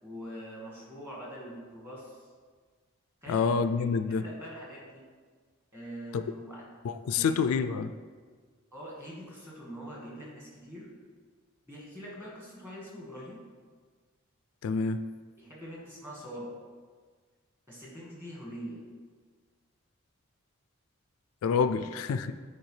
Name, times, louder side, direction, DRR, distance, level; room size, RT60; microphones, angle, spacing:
voice 1, 0.0-2.3 3.2-3.5 4.1-5.0 5.7-6.7 7.1-7.6 8.7-10.9 11.7-13.4 15.4-16.5 17.7-18.8 21.7-21.8, equal, 10° right, -5 dB, 1.7 m, -44 dB
voice 2, 3.3-4.2 6.1-6.2 6.8-7.9 14.6-15.0 21.4-22.3, left 5 dB, 85° left, 12 dB, 0.3 m, -27 dB
9.1 x 4.4 x 3.2 m, 1.5 s
head